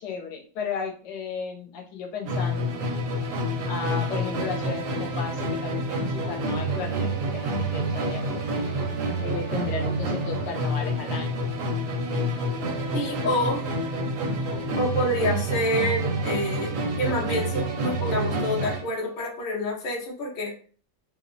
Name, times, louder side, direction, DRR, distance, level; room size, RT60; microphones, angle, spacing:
voice 1, 0.0-2.8 3.6-8.6 9.2-11.3, left 5 dB, 80° left, 1 dB, 1.2 m, -35 dB
Musical instrument, 2.2-18.9, right 1 dB, 70° right, 0.8 m, -28 dB
voice 2, 12.9-13.6 14.8-20.5, left 1 dB, 50° left, -3 dB, 0.6 m, -27 dB
3.0 x 2.0 x 2.5 m, 0.41 s
omnidirectional pair, 1.9 m